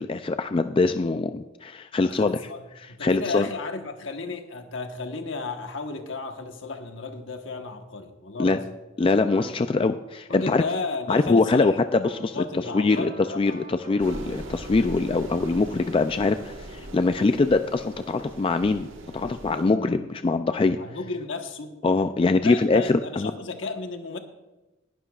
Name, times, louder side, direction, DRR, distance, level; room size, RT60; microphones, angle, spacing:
voice 1, 0.0-2.4 3.0-3.5 8.4-8.6 9.0-10.6 11.1-12.4 12.7-13.1 13.4-20.8 21.8-23.3, left 3 dB, 25° left, 9 dB, 0.3 m, -23 dB
voice 2, 2.0-8.7 10.3-11.8 12.3-13.6 20.8-21.8 22.4-24.2, left 3 dB, 75° left, 5 dB, 1.2 m, -33 dB
sound 1, 9.3-9.5 12.1-14.5, right 1 dB, 70° right, 2.6 m, -42 dB
sound 2, 14.0-19.7, right 1 dB, 85° right, 1.5 m, -40 dB
19.5 x 11.0 x 2.4 m, 1.0 s
head